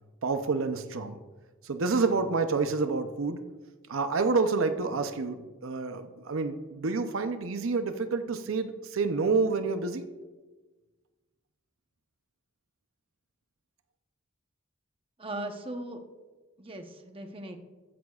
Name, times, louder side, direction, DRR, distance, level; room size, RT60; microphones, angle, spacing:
voice 1, 0.2-1.2 1.6-3.4 3.9-10.0, right 4 dB, 70° right, 8 dB, 0.6 m, -28 dB
voice 2, 15.2-16.0 16.6-17.6, right 1 dB, 25° right, 5 dB, 0.9 m, -38 dB
14.5 x 11.0 x 2.4 m, 1.3 s
head